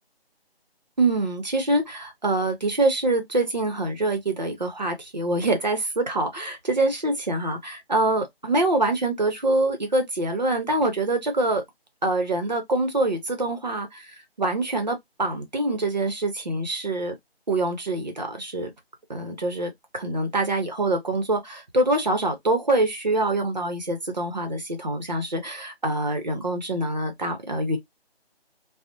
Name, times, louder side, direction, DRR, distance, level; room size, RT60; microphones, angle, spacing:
voice 1, 1.0-11.6 12.0-14.0 14.4-17.1 17.5-18.7 19.1-27.8, right 2 dB, 45° right, 0.7 m, -25 dB
2.5 x 2.0 x 2.8 m
figure-of-eight pair, 170°, 31 cm